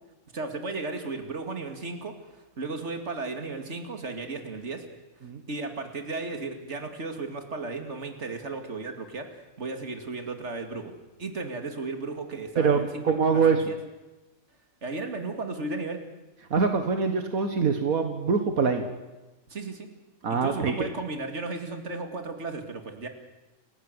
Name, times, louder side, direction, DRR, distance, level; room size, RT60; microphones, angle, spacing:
voice 1, 0.3-4.8 5.5-9.3 9.6-10.9 11.2-13.7 14.8-16.0 19.5-19.9 20.3-23.1, right 3 dB, 55° right, 5 dB, 2.7 m, -35 dB
voice 2, 13.0-13.6 16.5-18.8 20.2-20.7, right 5 dB, 80° right, 6 dB, 2.0 m, -24 dB
29.0 x 16.5 x 8.1 m, 1.1 s
omnidirectional pair, 1.4 m